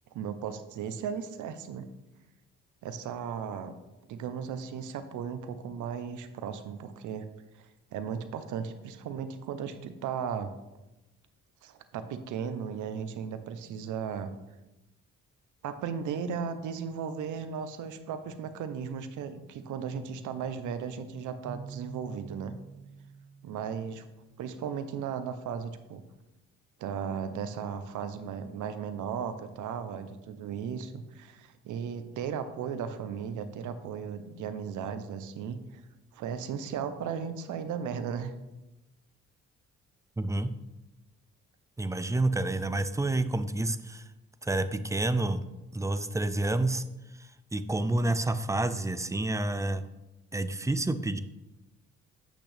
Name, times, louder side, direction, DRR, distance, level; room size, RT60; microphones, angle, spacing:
voice 1, 0.1-1.9 2.8-3.7 4.1-7.2 7.6-10.5 11.6-14.3 15.6-22.5 23.4-24.0 24.4-26.0 26.8-35.8 36.1-38.3, right 7 dB, 80° right, 10 dB, 0.8 m, -36 dB
Keyboard (musical), 21.4-24.3, right 6 dB, 45° right, 1.7 m, -47 dB
voice 2, 40.2-40.5 41.8-44.0 44.4-45.4 45.7-46.8 47.2-49.8 50.3-51.2, right 2 dB, 10° right, 11 dB, 0.5 m, -29 dB
8.4 x 6.2 x 3.4 m, 1.0 s
cardioid pair, 90°, 30 cm